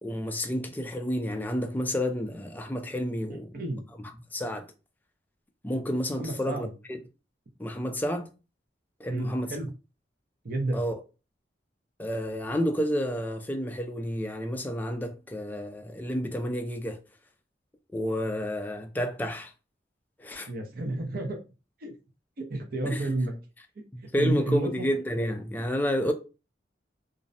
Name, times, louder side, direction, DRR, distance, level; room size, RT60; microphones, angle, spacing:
voice 1, 0.0-3.5 4.0-4.7 5.6-7.0 7.6-8.3 9.0-9.5 10.7-11.0 12.0-17.0 17.9-19.5 20.2-20.5 22.9-23.1 23.9-26.1, equal, 10° left, 0.3 m, -30 dB
voice 2, 6.2-6.7 9.1-9.7 10.4-10.8 20.5-21.4 21.8-21.9 22.4-23.4 24.2-24.7, right 2 dB, 55° right, 0.6 m, -30 dB
2.5 x 2.0 x 2.6 m
head